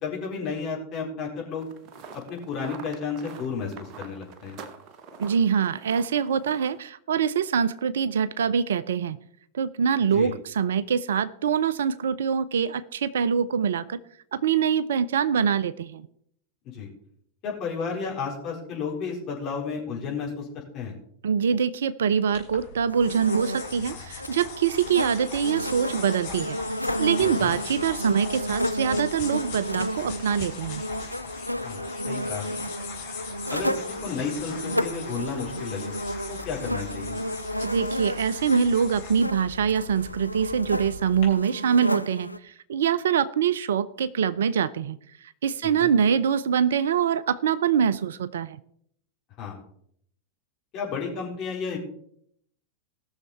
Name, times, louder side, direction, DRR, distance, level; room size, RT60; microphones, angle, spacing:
voice 1, 0.0-1.7 2.1-4.6 10.1-10.3 16.7-16.9 17.4-20.9 27.2-27.5 31.6-32.6 33.5-35.9 36.3-37.2 45.8-45.9 49.4-49.6 50.7-51.8, left 5 dB, 35° left, -2 dB, 4.1 m, -32 dB
sound 1, 1.6-6.8, right 5 dB, 40° right, 1.0 m, -45 dB
voice 2, 5.2-9.2 9.5-14.0 14.3-16.1 21.2-26.6 27.0-30.8 37.6-48.6, right 7 dB, 60° right, 18 dB, 0.4 m, -24 dB
sound 2, 22.3-41.2, left 6 dB, 55° left, 3.2 m, -40 dB
sound 3, 22.9-42.4, equal, 90° left, 0.4 m, -32 dB
18.5 x 6.5 x 4.2 m, 0.68 s
figure-of-eight pair, 90°, 0 cm